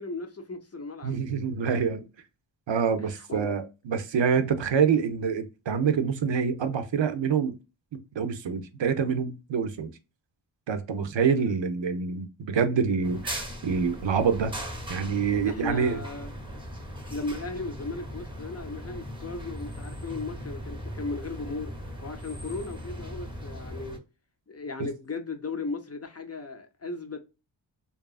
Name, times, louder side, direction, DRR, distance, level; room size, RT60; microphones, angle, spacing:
voice 1, 0.0-1.2 3.0-3.5 15.4-16.5 17.1-21.7 22.0-24.0 24.5-27.2, left 3 dB, 35° left, 0.6 m, -36 dB
voice 2, 1.0-2.1 2.7-7.6 8.2-9.9 10.7-14.5 14.9-16.0, right 6 dB, 70° right, 0.6 m, -26 dB
sound 1, 13.0-24.0, equal, 10° right, 0.7 m, -39 dB
2.8 x 2.3 x 2.3 m
wide cardioid pair, 75°, 46 cm